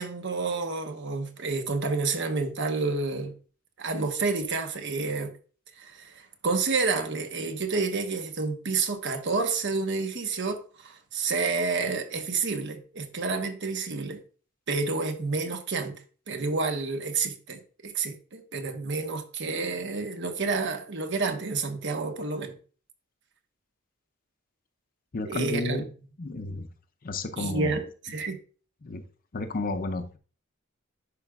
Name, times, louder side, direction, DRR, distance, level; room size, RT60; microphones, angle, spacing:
voice 1, 0.0-3.3 3.8-5.3 5.8-14.2 14.7-15.9 16.3-22.5 25.2-25.8 27.4-28.4, right 4 dB, 60° right, 1.0 m, -29 dB
voice 2, 25.1-25.8 26.2-26.7 27.0-27.8 28.8-29.0 29.3-30.2, left 2 dB, 45° left, 0.6 m, -32 dB
10.5 x 4.9 x 2.3 m
head